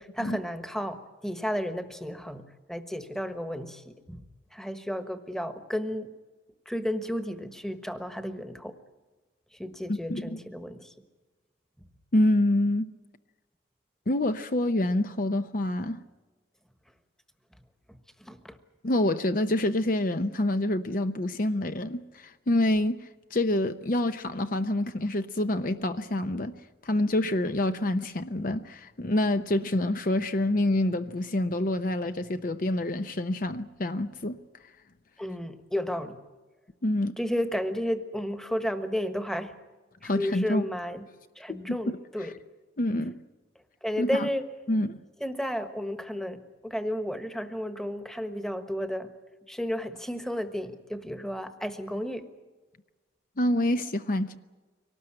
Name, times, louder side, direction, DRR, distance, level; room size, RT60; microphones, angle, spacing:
voice 1, 0.0-2.4 2.7-4.2 4.5-6.1 6.7-8.7 9.5-10.9 17.9-18.6 35.2-36.2 37.2-39.5 40.0-41.1 41.4-42.3 43.8-44.5 45.2-49.1 49.5-52.3, equal, 5° left, 1.3 m, -33 dB
voice 2, 9.9-10.4 12.1-12.9 14.1-16.0 18.8-26.5 26.8-34.4 36.8-37.1 40.0-40.6 41.5-42.3 42.8-43.2 44.0-44.3 44.7-45.0 53.4-54.4, left 1 dB, 45° left, 0.7 m, -27 dB
24.0 x 19.0 x 8.8 m
head